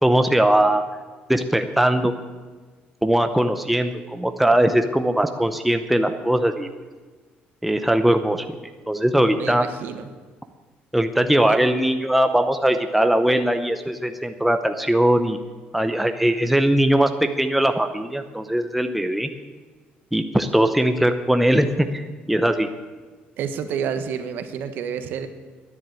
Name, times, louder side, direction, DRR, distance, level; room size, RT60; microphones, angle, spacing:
voice 1, 0.0-0.8 1.3-2.1 3.0-6.7 7.6-8.5 8.9-9.6 10.9-15.4 15.7-19.3 20.1-22.7, right 1 dB, ahead, 7 dB, 0.7 m, -20 dB
voice 2, 9.3-10.1 11.5-11.6 23.4-25.3, right 7 dB, 65° right, 9 dB, 1.3 m, -29 dB
11.0 x 9.9 x 9.0 m, 1.4 s
cardioid pair, 145°, 4 cm